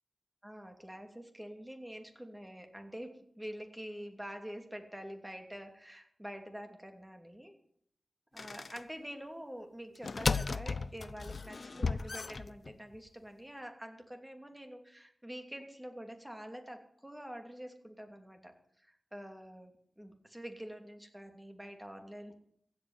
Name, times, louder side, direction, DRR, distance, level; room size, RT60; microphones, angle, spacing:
voice 1, 0.4-7.6 8.3-22.5, equal, 10° right, 5 dB, 2.9 m, -46 dB
sound 1, 8.4-8.8 9.9-13.0, left 4 dB, 60° left, 0.6 m, -35 dB
15.5 x 8.5 x 9.7 m, 0.68 s
wide cardioid pair, 70°, 0 cm